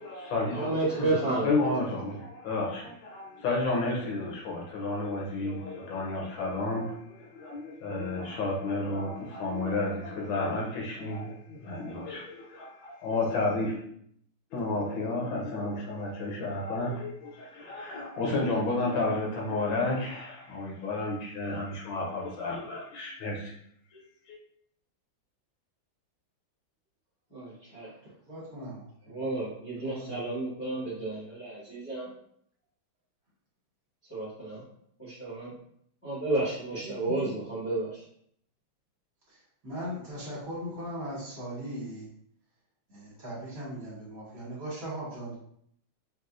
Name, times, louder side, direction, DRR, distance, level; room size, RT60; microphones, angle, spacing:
voice 1, 0.0-13.8 14.5-23.5 23.9-24.0 24.3-24.4, left 2 dB, 75° left, -2 dB, 1.5 m, -31 dB
voice 2, 0.5-1.5 27.3-27.9 29.1-32.1 34.1-34.6 35.2-35.5 36.0-38.0, right 2 dB, 25° left, -10 dB, 0.8 m, -31 dB
voice 3, 28.3-29.2 29.8-30.2 36.8-37.1 39.6-42.1 42.9-45.3, equal, 50° right, -7 dB, 1.4 m, -39 dB
4.1 x 2.5 x 2.4 m, 0.68 s
omnidirectional pair, 2.2 m